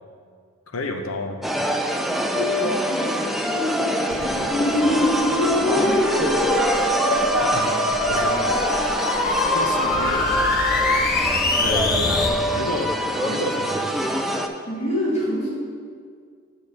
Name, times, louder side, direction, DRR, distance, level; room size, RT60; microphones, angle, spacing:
voice 1, 0.7-1.4 7.4-7.7 8.1-8.4 9.2-10.3 11.6-12.9 13.2-13.9, left 2 dB, 85° left, 5 dB, 0.7 m, -30 dB
sound 1, 1.4-14.5, equal, ahead, 0.3 m, -24 dB
voice 2, 2.1-4.2 5.6-6.4 14.7-15.5, equal, 35° left, -6 dB, 1.7 m, -27 dB
sound 2, 4.1-12.3, left 2 dB, 50° left, 0.7 m, -24 dB
7.2 x 4.2 x 6.4 m, 2.1 s
head